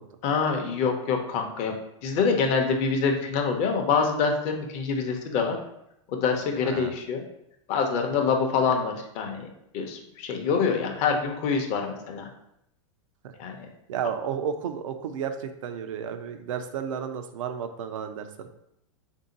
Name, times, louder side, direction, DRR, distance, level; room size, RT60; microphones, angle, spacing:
voice 1, 0.2-1.7 2.0-5.6 6.1-7.2 7.7-9.5 9.7-12.3 13.4-13.7, left 5 dB, 40° left, 3 dB, 0.7 m, -25 dB
voice 2, 6.6-6.9 13.2-13.3 13.9-18.5, right 8 dB, 75° right, 8 dB, 0.5 m, -32 dB
3.7 x 2.7 x 3.9 m, 0.80 s
hypercardioid pair, 130°, 17 cm